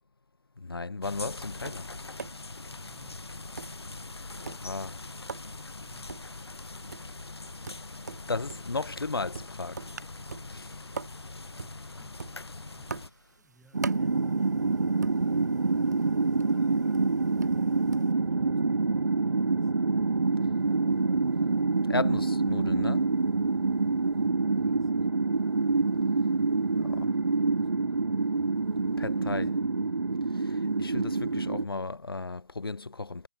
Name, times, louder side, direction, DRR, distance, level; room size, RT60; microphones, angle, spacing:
voice 1, 0.6-1.9 4.4-5.0 8.3-9.8 10.5-10.8 21.9-23.1 27.0-27.1 29.0-29.5 30.3-33.3, left 3 dB, 65° left, 1.2 m, -35 dB
sound 1, 1.0-13.1, left 3 dB, 85° left, 0.9 m, -42 dB
Tap, 1.4-18.1, right 5 dB, 45° right, 5.7 m, -46 dB
voice 2, 11.6-17.8 18.1-19.7 24.1-25.1 26.7-28.2 28.9-30.0, right 1 dB, ahead, 6.3 m, -63 dB
sound 2, 13.7-31.7, right 3 dB, 70° right, 0.9 m, -26 dB
figure-of-eight pair, 160°, 13 cm